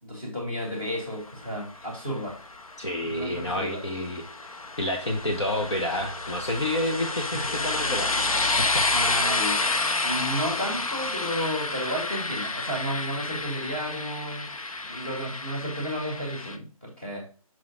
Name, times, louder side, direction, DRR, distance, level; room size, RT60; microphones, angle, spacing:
voice 1, 0.0-2.4 3.0-3.8 7.3-7.5 8.9-9.6 10.0-14.5 14.9-17.3, equal, 15° left, -5 dB, 2.0 m, -32 dB
sound 1, 1.6-16.6, left 3 dB, 65° left, 0.8 m, -30 dB
voice 2, 2.8-4.2 4.8-8.2 8.6-8.8, left 1 dB, 50° left, 1 dB, 1.1 m, -29 dB
6.4 x 4.0 x 3.7 m, 0.38 s
figure-of-eight pair, 175°, 19 cm